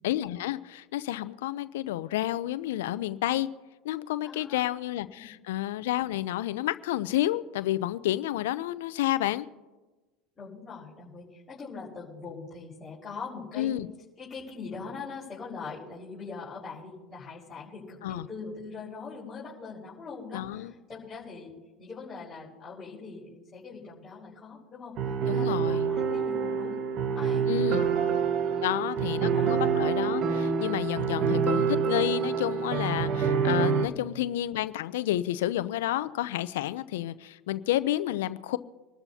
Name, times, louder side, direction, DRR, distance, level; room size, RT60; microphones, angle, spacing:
voice 1, 0.0-3.5 3.8-9.5 13.6-13.9 18.0-18.3 20.3-20.7 25.3-25.9 27.5-27.9 28.6-38.6, left 14 dB, 80° left, 14 dB, 0.6 m, -30 dB
voice 2, 4.2-4.7 5.1-5.4 10.4-13.8 14.2-26.8 27.1-28.0 28.4-29.5, left 4 dB, 20° left, -8 dB, 5.0 m, -42 dB
sound 1, 25.0-33.9, right 6 dB, 50° right, 1.5 m, -27 dB
26.0 x 12.5 x 2.8 m, 1.2 s
hypercardioid pair, 90°, 0 cm